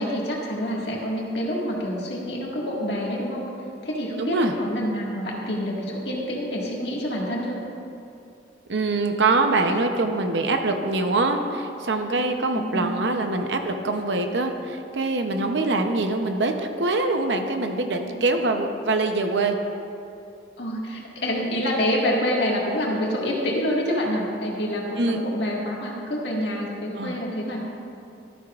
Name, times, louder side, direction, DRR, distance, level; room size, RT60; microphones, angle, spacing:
voice 1, 0.0-3.4 3.8-7.6 12.5-13.0 18.1-18.2 20.6-27.6, equal, 70° left, -3 dB, 1.8 m, -27 dB
voice 2, 4.2-4.5 8.7-19.6 25.0-25.2 27.0-27.2, right 3 dB, 80° right, 5 dB, 0.7 m, -24 dB
12.5 x 9.8 x 2.4 m, 2.6 s
head